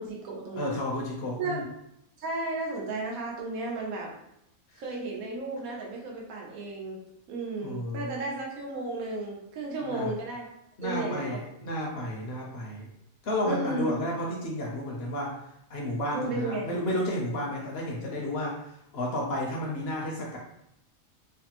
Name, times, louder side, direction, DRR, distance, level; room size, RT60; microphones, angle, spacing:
voice 1, 0.0-0.8 1.4-1.6 2.2-4.1 4.8-7.0 7.3-10.5 10.8-11.4 13.4-14.0 16.1-16.7, right 2 dB, 85° right, -1 dB, 1.2 m, -34 dB
voice 2, 0.6-1.7 4.7-4.8 7.6-8.1 9.9-10.1 10.8-12.9 13.2-15.4 15.7-20.4, left 1 dB, 55° left, -1 dB, 0.8 m, -32 dB
3.3 x 2.1 x 2.9 m, 0.80 s
omnidirectional pair, 1.4 m